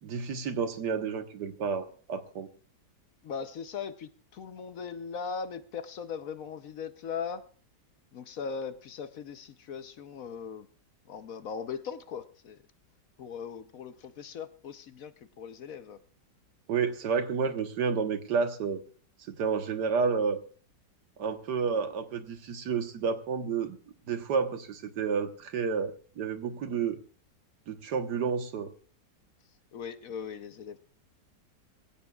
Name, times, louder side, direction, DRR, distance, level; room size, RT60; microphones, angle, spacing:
voice 1, 0.0-2.5 16.7-18.8 19.2-20.4 21.2-23.8 24.1-27.0 27.7-28.7, right 5 dB, 70° right, 8 dB, 1.8 m, -30 dB
voice 2, 3.2-7.4 8.1-10.7 11.1-12.6 13.2-16.0 29.7-30.8, left 6 dB, 60° left, 11 dB, 1.1 m, -39 dB
23.0 x 16.0 x 2.3 m, 0.40 s
omnidirectional pair, 1.9 m